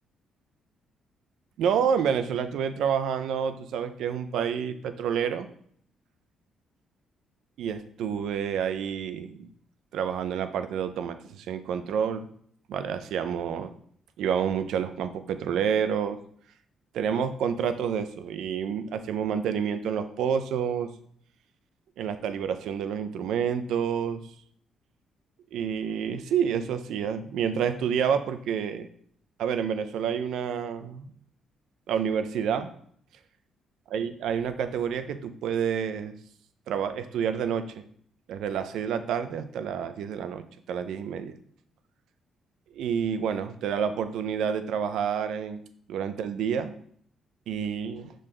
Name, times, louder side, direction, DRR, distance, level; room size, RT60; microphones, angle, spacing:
voice 1, 1.6-5.5 7.6-9.5 9.9-12.3 12.7-13.7 14.2-16.2 16.9-20.9 22.0-24.2 25.5-28.9 29.4-31.1 31.9-32.7 33.9-36.1 36.7-37.8 38.3-40.4 40.7-41.4 42.7-45.6 45.9-46.7 47.5-48.1, right 7 dB, 80° right, 10 dB, 0.5 m, -28 dB
6.4 x 3.9 x 3.8 m, 0.62 s
cardioid pair, 90°, 0 cm